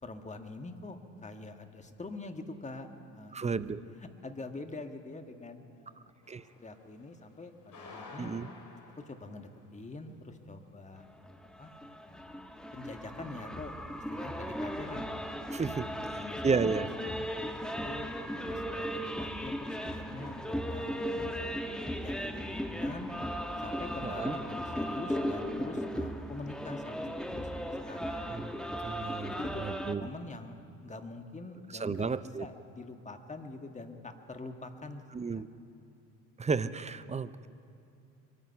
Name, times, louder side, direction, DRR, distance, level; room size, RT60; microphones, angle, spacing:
voice 1, 0.0-2.9 3.1-3.6 4.0-6.1 6.6-8.3 9.0-11.7 12.0-13.8 14.1-15.3 15.8-16.7 17.1-18.1 18.5-21.6 21.9-23.1 23.6-28.3 29.3-29.6 30.0-35.0 35.3-35.4, left 2 dB, 20° left, 6 dB, 1.6 m, -45 dB
voice 2, 3.3-3.8 6.3-6.4 8.2-8.5 15.5-15.9 16.4-16.9 24.0-24.4 28.3-28.5 28.8-30.1 31.8-32.5 35.1-35.5 36.4-37.5, right 5 dB, 20° right, 15 dB, 0.6 m, -32 dB
sound 1, 6.2-6.6 7.7-9.5, left 3 dB, 50° left, 3.4 m, -49 dB
sound 2, 11.3-29.9, equal, ahead, 1.2 m, -36 dB
24.5 x 9.7 x 5.7 m, 2.6 s
hypercardioid pair, 60°, 37 cm